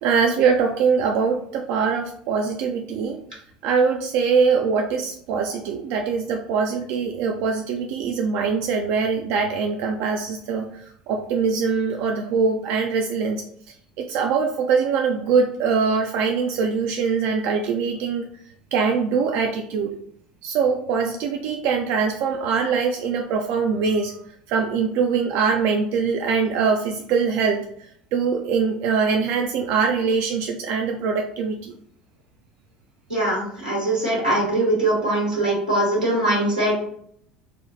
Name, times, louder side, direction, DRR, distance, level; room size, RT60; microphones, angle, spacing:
voice 1, 0.0-3.2 3.6-13.4 14.0-18.3 18.7-20.0 20.4-24.2 24.5-27.6 28.1-31.7, right 5 dB, 50° right, 3 dB, 0.3 m, -22 dB
voice 2, 33.1-36.8, right 1 dB, 90° right, -3 dB, 1.3 m, -22 dB
4.1 x 2.1 x 2.6 m, 0.66 s
figure-of-eight pair, 65°, 4 cm